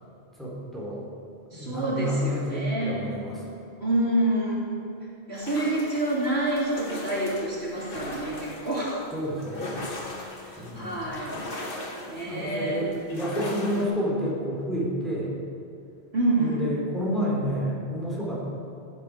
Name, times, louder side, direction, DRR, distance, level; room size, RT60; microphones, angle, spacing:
voice 1, 0.4-1.0 1.5-3.4 9.1-9.7 10.6-11.0 12.2-15.4 16.4-18.4, equal, ahead, -6 dB, 3.8 m, -29 dB
voice 2, 1.5-3.1 3.8-4.6 5.3-9.1 10.7-11.4 12.1-12.8 16.1-16.6, right 1 dB, 65° right, -6 dB, 3.2 m, -27 dB
sound 1, 5.4-13.8, left 2 dB, 50° left, 1.7 m, -38 dB
15.0 x 11.0 x 5.1 m, 2.7 s
omnidirectional pair, 1.2 m